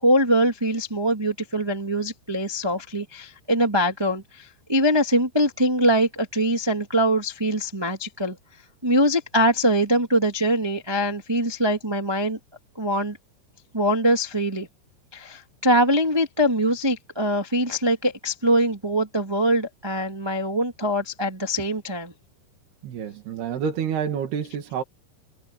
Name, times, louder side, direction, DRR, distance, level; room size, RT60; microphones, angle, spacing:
voice 1, 0.0-8.3 8.8-12.4 12.8-13.2 13.7-14.7 15.1-22.1, equal, 20° right, 0.6 m, -23 dB
voice 2, 22.8-24.8, right 7 dB, 65° right, 4.0 m, -28 dB
omnidirectional pair, 5.1 m